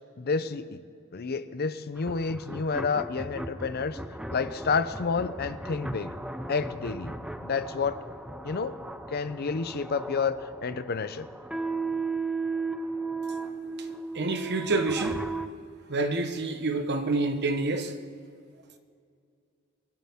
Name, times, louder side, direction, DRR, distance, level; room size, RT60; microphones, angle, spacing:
voice 1, 0.2-0.8 1.1-4.0 4.3-6.1 6.5-7.1 7.4-8.0 8.4-8.7 9.1-11.3, left 5 dB, 50° left, 0.6 m, -29 dB
sound 1, 2.0-15.5, right 3 dB, 5° right, 0.6 m, -36 dB
voice 2, 14.1-15.3 15.9-18.0, right 2 dB, 55° right, 1.1 m, -28 dB
23.5 x 12.0 x 3.6 m
head